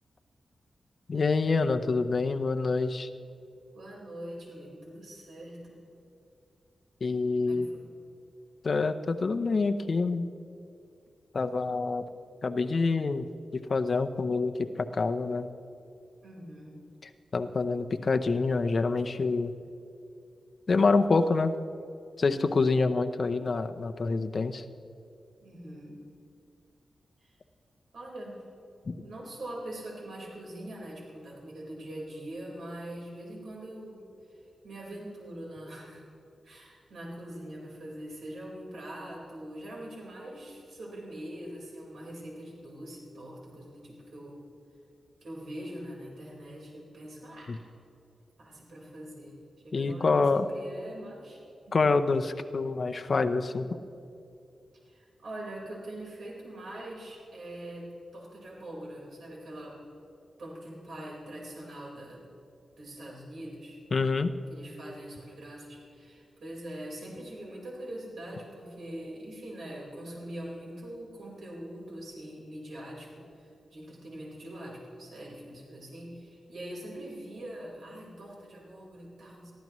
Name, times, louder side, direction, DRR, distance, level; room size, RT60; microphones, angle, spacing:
voice 1, 1.1-3.1 7.0-7.7 8.6-10.3 11.3-12.1 12.4-13.3 13.5-15.5 17.3-19.5 20.7-21.5 22.2-24.6 28.9-29.0 47.5-47.6 49.7-50.5 51.7-53.8 63.9-64.3, left 4 dB, 45° left, 8 dB, 0.7 m, -26 dB
voice 2, 3.7-5.8 7.4-7.9 16.2-16.8 25.4-26.0 27.2-27.3 27.9-28.4 29.0-36.0 36.4-44.4 45.2-47.6 48.4-51.8 54.8-59.8 60.4-62.2 62.8-63.8 64.5-79.5, right 1 dB, 75° right, -4 dB, 4.5 m, -43 dB
23.0 x 15.0 x 3.1 m, 2.6 s
wide cardioid pair, 140°, 0 cm